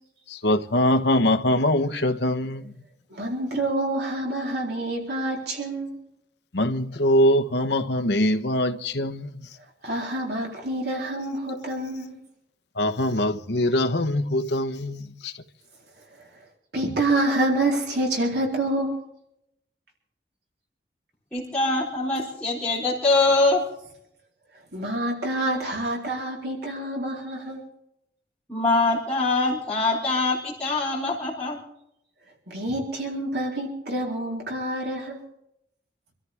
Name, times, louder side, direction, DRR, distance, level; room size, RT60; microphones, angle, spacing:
voice 1, 0.3-2.6 6.5-9.3 12.8-15.3, left 1 dB, 65° left, 1.2 m, -23 dB
voice 2, 3.1-6.0 9.8-12.2 16.7-18.9 24.7-27.6 32.5-35.2, right 1 dB, 60° right, 4.0 m, -27 dB
voice 3, 21.3-23.6 28.5-31.6, left 3 dB, 5° left, 4.1 m, -23 dB
26.5 x 14.0 x 3.6 m
head